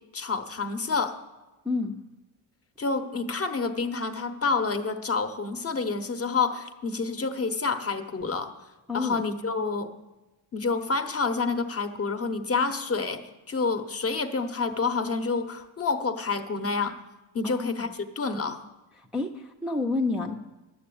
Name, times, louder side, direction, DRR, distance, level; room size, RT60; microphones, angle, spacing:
voice 1, 0.1-1.2 2.8-8.5 8.9-9.9 10.5-13.2 13.5-17.0 17.3-18.6, left 4 dB, 30° left, 8 dB, 0.8 m, -28 dB
voice 2, 1.6-1.9 8.9-9.2 17.4-17.9 19.0-20.3, left 3 dB, ahead, 0 dB, 0.5 m, -29 dB
11.5 x 7.7 x 8.4 m, 1.1 s
wide cardioid pair, 150°, 48 cm